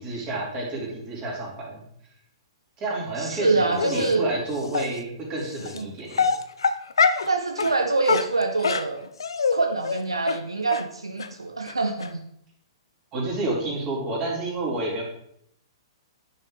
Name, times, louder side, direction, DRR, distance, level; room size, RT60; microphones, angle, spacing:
voice 1, 0.0-1.8 2.8-6.3 13.1-15.0, right 2 dB, 30° right, -3 dB, 3.5 m, -30 dB
voice 2, 3.2-4.3 5.7-5.9 7.2-9.1 9.5-12.2, right 3 dB, 80° right, 5 dB, 0.8 m, -25 dB
Dog, 3.8-4.1 4.7-4.9 5.7-5.8 6.1-7.3 7.6-7.7 8.1-9.6 9.8-10.0 10.3-10.4 10.7-10.8 11.2-11.3 11.7-11.8 12.0-12.1, left 5 dB, 70° left, 0.6 m, -23 dB
10.0 x 5.6 x 3.9 m, 0.71 s
figure-of-eight pair, 115°, 3 cm